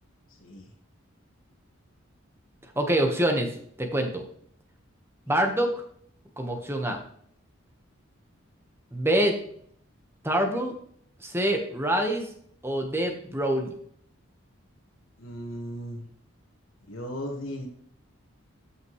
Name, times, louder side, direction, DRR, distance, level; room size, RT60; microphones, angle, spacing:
voice 1, 0.4-0.7 15.2-16.1 16.9-17.7, equal, 70° left, -2 dB, 1.5 m, -36 dB
voice 2, 2.8-3.5 3.8-4.2 5.3-5.7 6.4-7.0 8.9-9.4 10.2-10.8 11.2-12.3 12.6-13.7, right 1 dB, 10° right, 3 dB, 1.2 m, -25 dB
13.5 x 5.8 x 3.1 m, 0.62 s
head